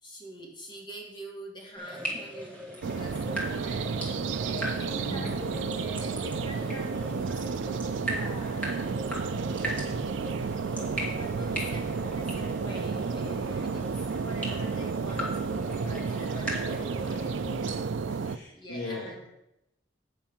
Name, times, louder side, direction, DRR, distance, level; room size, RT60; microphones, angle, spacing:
voice 1, 0.0-5.4 5.8-8.8 9.5-10.4 11.1-17.3 18.5-19.3, right 1 dB, 25° left, 0 dB, 1.7 m, -45 dB
sound 1, 1.7-17.8, equal, 10° left, 2.5 m, -39 dB
sound 2, 2.8-18.4, right 5 dB, 75° right, 0.4 m, -32 dB
sound 3, 3.1-16.4, right 1 dB, 25° right, 0.9 m, -49 dB
voice 2, 5.0-5.9 17.1-17.8 18.1-19.1, left 1 dB, 90° left, -2 dB, 1.9 m, -40 dB
8.9 x 7.0 x 5.8 m, 0.86 s
head